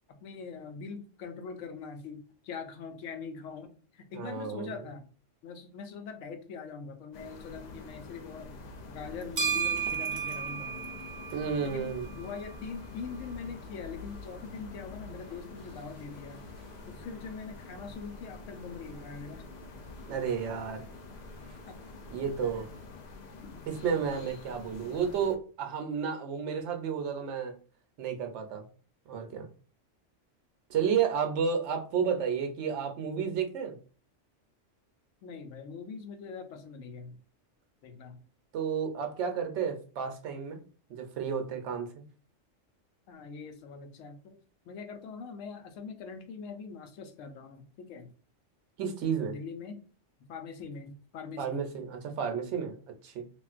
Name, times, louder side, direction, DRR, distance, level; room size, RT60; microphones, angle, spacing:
voice 1, 0.2-5.1 5.4-8.5 8.9-10.7 11.6-16.4 16.9-19.4 21.7-21.8 23.3-23.7 35.2-37.2 37.8-38.2 43.1-44.4 44.7-48.1 49.2-49.8 50.2-51.6, left 5 dB, 85° left, 7 dB, 1.0 m, -43 dB
voice 2, 4.1-4.7 11.3-12.1 20.1-20.8 22.1-22.7 23.7-27.5 28.0-28.6 29.1-29.5 30.7-33.8 38.5-40.6 40.9-41.9 48.8-49.3 51.4-53.2, right 7 dB, 70° right, 5 dB, 0.9 m, -31 dB
sound 1, 7.1-25.4, left 4 dB, 70° left, 0.4 m, -47 dB
sound 2, 9.0-22.8, right 7 dB, 50° right, 0.6 m, -40 dB
3.5 x 2.4 x 2.4 m, 0.39 s
omnidirectional pair, 1.3 m